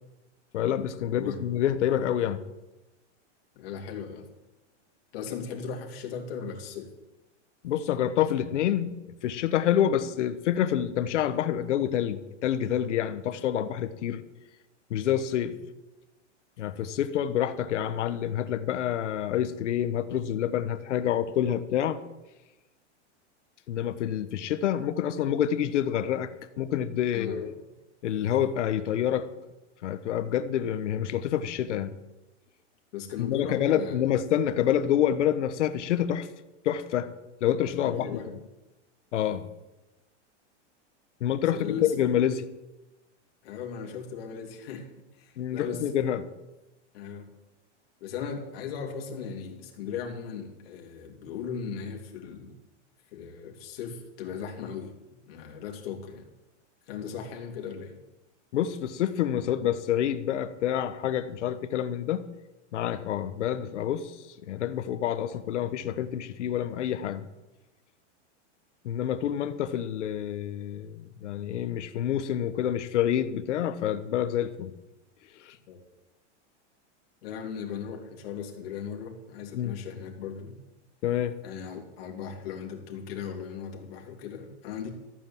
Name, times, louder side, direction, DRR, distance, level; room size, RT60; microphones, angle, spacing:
voice 1, 0.5-2.4 7.6-14.2 14.9-15.5 16.6-22.0 23.7-27.5 28.0-29.3 29.8-31.9 33.2-36.3 36.6-37.1 37.4-38.2 39.1-39.5 41.2-42.4 45.4-46.3 58.5-62.2 62.7-64.1 64.5-67.2 68.8-74.7 75.4-75.6 79.5-79.8 81.0-81.3, left 10 dB, 75° left, 11 dB, 1.3 m, -27 dB
voice 2, 1.1-1.4 3.5-4.3 5.1-6.9 15.5-15.6 27.1-27.6 32.9-34.0 37.8-38.3 41.5-41.9 43.4-44.9 45.1-45.8 46.9-47.3 48.0-52.6 53.1-54.9 55.3-56.3 56.9-57.9 75.7-75.8 77.2-80.5 81.4-84.9, left 7 dB, 55° left, 1 dB, 3.0 m, -37 dB
14.5 x 9.1 x 7.2 m, 1.0 s
supercardioid pair, 175°, 36 cm